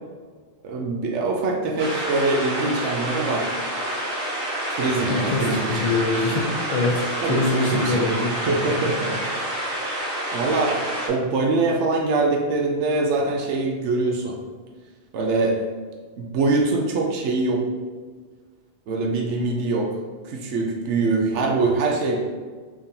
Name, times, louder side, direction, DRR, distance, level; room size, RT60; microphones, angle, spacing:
voice 1, 0.6-3.5 4.7-5.9 7.2-8.1 8.5-9.5 10.3-10.8 11.1-14.4 15.1-15.6 16.2-17.7 18.9-19.9 20.2-22.2, right 3 dB, 90° right, 0 dB, 0.9 m, -23 dB
sound 1, 1.8-11.1, right 1 dB, 55° right, 1.0 m, -28 dB
voice 2, 5.1-8.3, left 3 dB, 50° left, -1 dB, 0.4 m, -24 dB
3.6 x 3.5 x 2.7 m, 1.5 s
omnidirectional pair, 1.2 m